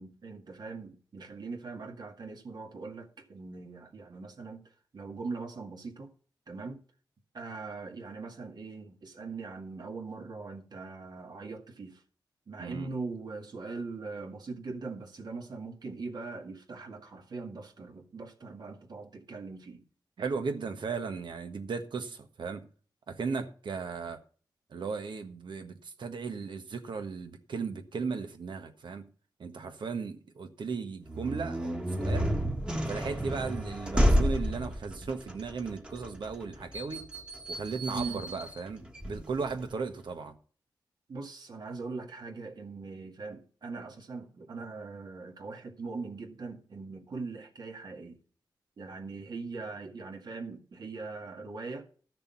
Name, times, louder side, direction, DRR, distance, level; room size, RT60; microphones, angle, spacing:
voice 1, 0.0-4.6 4.9-6.1 6.5-6.8 7.3-12.0 12.5-19.8 33.0-33.2 37.9-38.2 41.1-48.2 48.8-51.9, right 3 dB, 60° right, 2.0 m, -41 dB
voice 2, 12.6-12.9 20.2-22.6 23.1-24.2 24.7-29.0 29.4-32.3 32.9-37.1 37.5-40.4, right 5 dB, 80° right, 1.4 m, -36 dB
sound 1, 31.1-39.7, equal, 10° right, 1.5 m, -31 dB
13.0 x 6.8 x 5.7 m
wide cardioid pair, 135°, 8 cm